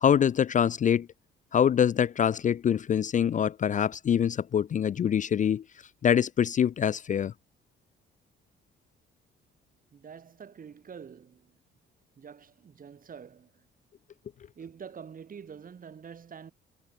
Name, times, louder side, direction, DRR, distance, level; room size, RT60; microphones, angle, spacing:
voice 1, 0.0-1.1 1.5-5.6 6.0-7.3, left 8 dB, 40° left, 0.4 m, -24 dB
voice 2, 9.9-11.5 12.2-13.6 14.6-16.5, right 7 dB, 45° right, 2.2 m, -46 dB
cardioid pair, 90°, 20 cm